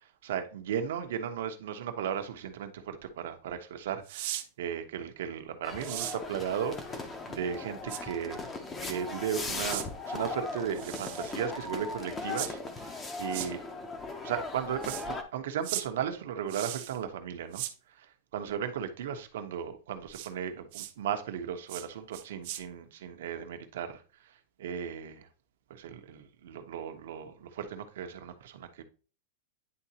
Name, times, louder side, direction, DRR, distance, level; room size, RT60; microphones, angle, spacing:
voice 1, 0.2-8.5 8.8-13.6 14.2-17.6 17.9-24.0 24.6-25.3 25.7-28.8, right 8 dB, 70° right, 1.0 m, -36 dB
sound 1, 4.1-4.4 5.8-6.2 7.9-8.0 9.7-9.9 10.7-11.4 12.3-12.5 13.3-13.5 14.8-15.0 15.6-15.8 16.5-17.0 17.5-17.7 20.1-20.3 20.7-20.9 21.7-21.9 22.1-22.6, right 14 dB, 50° right, 0.6 m, -37 dB
sound 2, 5.6-15.2, left 3 dB, 15° left, 0.7 m, -38 dB
9.7 x 3.8 x 2.8 m
supercardioid pair, 165°, 0 cm